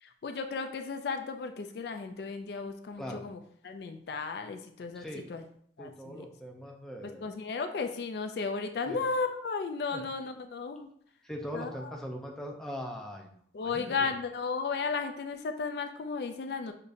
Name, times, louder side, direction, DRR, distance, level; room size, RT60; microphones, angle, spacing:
voice 1, 0.0-5.4 5.8-6.3 7.2-10.9 11.5-11.9 13.5-16.7, left 4 dB, 60° left, 7 dB, 0.4 m, -34 dB
voice 2, 4.9-5.2 5.8-7.3 8.9-9.0 9.9-10.0 11.2-13.3 13.6-14.1, equal, 5° left, 1 dB, 0.5 m, -40 dB
6.5 x 2.7 x 2.6 m, 0.64 s
head